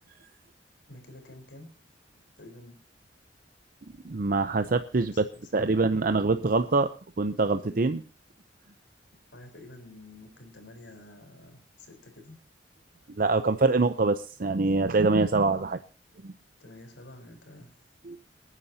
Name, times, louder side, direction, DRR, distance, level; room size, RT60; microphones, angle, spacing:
voice 1, 0.9-1.7 2.4-2.8 5.0-5.5 9.3-12.4 16.6-17.8, left 1 dB, 75° left, 5 dB, 4.2 m, -49 dB
voice 2, 4.0-5.1 5.5-6.9 7.2-8.0 13.2-15.8 16.2-16.3 18.1-18.2, right 3 dB, 50° right, 9 dB, 0.7 m, -24 dB
27.5 x 9.9 x 2.8 m, 0.35 s
head